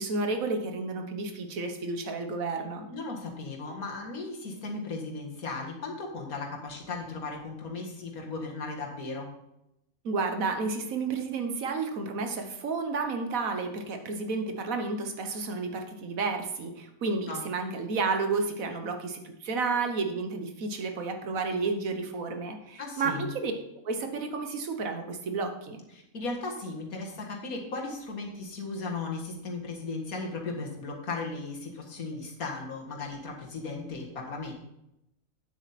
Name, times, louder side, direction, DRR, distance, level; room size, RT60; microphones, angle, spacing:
voice 1, 0.0-2.9 10.0-23.5 23.8-25.8, right 4 dB, 75° right, 5 dB, 1.6 m, -31 dB
voice 2, 2.9-9.3 17.3-17.4 22.8-23.4 25.9-34.5, left 3 dB, 85° left, 0 dB, 2.2 m, -36 dB
9.3 x 7.8 x 4.2 m, 0.84 s
omnidirectional pair, 1.5 m